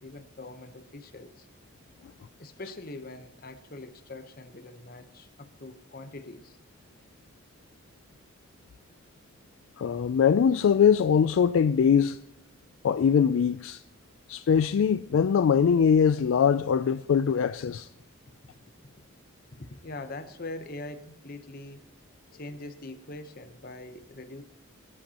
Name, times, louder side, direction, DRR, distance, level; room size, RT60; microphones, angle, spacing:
voice 1, 0.0-1.5 2.4-6.6 18.4-18.5 19.5-21.9 22.3-24.4, left 2 dB, 45° left, 0.9 m, -43 dB
voice 2, 9.8-12.2 12.8-13.8 14.3-17.9, left 7 dB, 70° left, 0.3 m, -22 dB
21.5 x 8.8 x 2.9 m
head